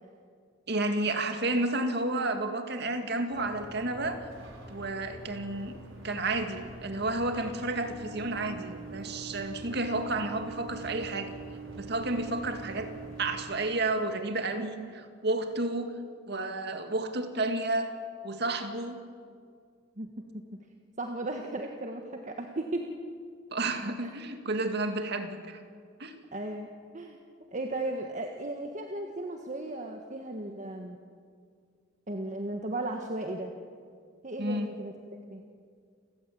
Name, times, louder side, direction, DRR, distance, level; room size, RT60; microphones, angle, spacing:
voice 1, 0.7-4.2 4.7-5.8 6.0-11.3 11.8-12.9 13.2-16.0 16.3-17.9 18.2-19.0 23.5-25.6 26.0-26.1 34.4-34.7, right 2 dB, 55° right, 6 dB, 2.2 m, -31 dB
sound 1, 3.3-13.4, right 3 dB, 85° right, 6.2 m, -44 dB
voice 2, 20.0-20.4 21.0-22.9 24.0-24.1 26.3-26.7 26.9-27.2 27.5-31.0 32.1-33.5 34.2-34.9 35.3-35.4, right 2 dB, 40° right, 3 dB, 1.6 m, -35 dB
29.5 x 15.0 x 8.7 m, 2.1 s
head